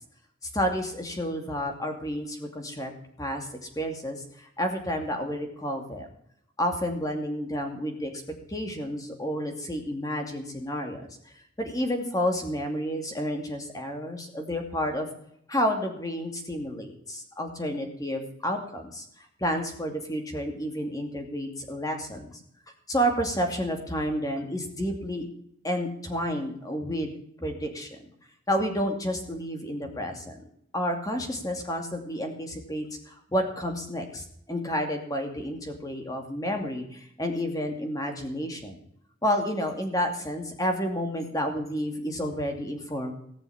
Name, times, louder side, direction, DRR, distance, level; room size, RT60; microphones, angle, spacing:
voice 1, 0.4-2.9 3.2-3.5 3.8-6.1 6.6-8.1 8.5-11.1 11.6-15.1 15.5-22.4 22.9-25.3 25.6-27.1 27.4-27.9 28.5-30.4 30.7-38.8 39.2-43.1, equal, 20° left, 3 dB, 2.5 m, -30 dB
18.5 x 7.0 x 8.6 m, 0.70 s
head